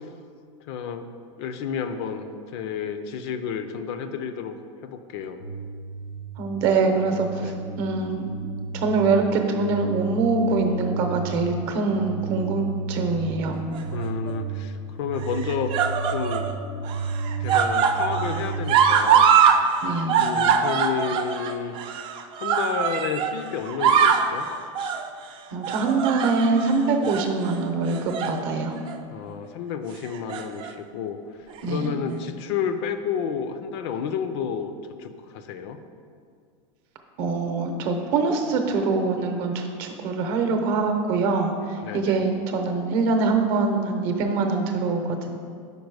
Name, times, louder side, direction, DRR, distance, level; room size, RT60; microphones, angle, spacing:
voice 1, 0.7-1.0 1.4-4.6 4.8-5.4 7.4-7.5 13.9-16.5 17.4-19.3 20.2-21.7 22.4-24.5 27.0-27.1 29.1-34.7 35.0-35.8 41.8-42.2, left 7 dB, 60° left, 9 dB, 0.4 m, -31 dB
sound 1, 5.4-18.7, right 4 dB, 90° left, 1.4 m, -33 dB
voice 2, 6.4-7.5 7.8-8.3 8.7-13.6 19.8-20.2 25.5-28.8 31.6-32.0 37.2-45.3, right 4 dB, 50° right, 5 dB, 0.7 m, -24 dB
sound 2, 13.7-14.3 15.2-16.5 16.8-19.6 19.9-23.3 23.7-24.3 24.7-25.0 25.6-26.7 27.0-27.2 27.9-28.4 28.8-28.9 30.0-30.7 31.6-31.7, right 7 dB, 30° right, 0.3 m, -22 dB
5.3 x 4.5 x 4.7 m, 2.2 s
supercardioid pair, 150°, 16 cm